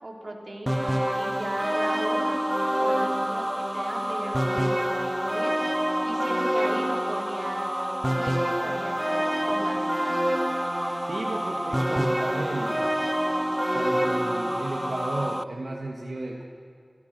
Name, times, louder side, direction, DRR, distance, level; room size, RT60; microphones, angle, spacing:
voice 1, 0.0-2.4 2.8-3.5 3.7-7.8 8.2-10.0, right 1 dB, 60° right, 0 dB, 3.9 m, -37 dB
sound 1, 0.7-15.4, equal, 10° right, 0.5 m, -27 dB
voice 2, 11.1-12.9 13.7-16.4, right 2 dB, 80° right, -1 dB, 1.9 m, -33 dB
28.0 x 16.0 x 6.7 m, 2.2 s
wide cardioid pair, 45°, 0 cm